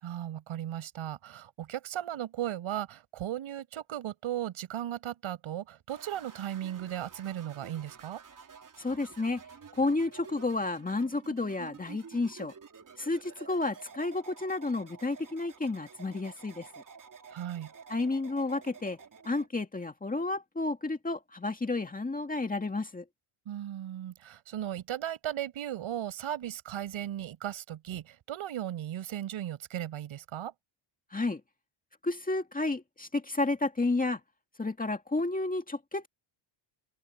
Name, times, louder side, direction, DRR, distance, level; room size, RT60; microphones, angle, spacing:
voice 1, 0.0-8.2 17.3-17.7 23.5-30.5, right 11 dB, 70° right, 6.1 m, -36 dB
sound 1, 5.9-19.5, right 6 dB, 40° right, 4.3 m, -51 dB
voice 2, 8.8-9.4 9.7-12.5 13.0-16.7 17.9-19.0 19.2-23.0 31.1-31.4 32.0-34.2 34.6-36.1, left 2 dB, 15° left, 2.1 m, -31 dB
open air
cardioid pair, 115°, 49 cm